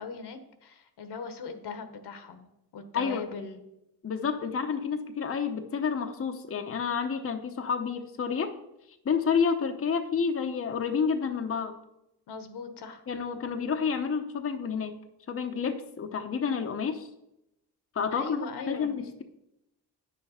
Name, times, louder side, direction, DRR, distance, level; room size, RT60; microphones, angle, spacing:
voice 1, 0.0-2.5 2.7-3.6 12.3-13.0 18.1-19.0, left 4 dB, 70° left, 8 dB, 1.4 m, -39 dB
voice 2, 2.9-3.3 4.0-8.5 9.0-11.7 13.1-14.9 15.3-17.1 17.9-18.4 18.7-19.2, left 6 dB, 35° left, 5 dB, 0.8 m, -29 dB
9.1 x 6.6 x 5.6 m, 0.86 s
cardioid pair, 95°, 41 cm